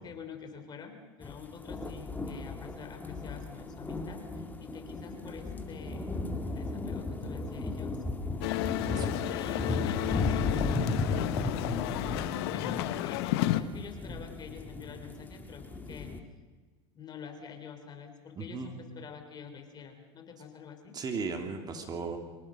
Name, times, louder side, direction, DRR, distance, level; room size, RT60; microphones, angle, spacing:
voice 1, 0.0-6.2 6.5-8.0 9.3-10.7 11.5-13.3 13.6-16.1 16.9-21.0, left 6 dB, 30° left, 6 dB, 3.5 m, -47 dB
sound 1, 1.2-16.2, left 3 dB, 10° left, 2.1 m, -35 dB
sound 2, 8.4-13.6, left 15 dB, 60° left, 1.1 m, -32 dB
voice 2, 18.4-18.8 20.9-22.2, right 4 dB, 30° right, 5 dB, 3.0 m, -36 dB
24.0 x 18.5 x 6.3 m, 1.4 s
hypercardioid pair, 100°, 14 cm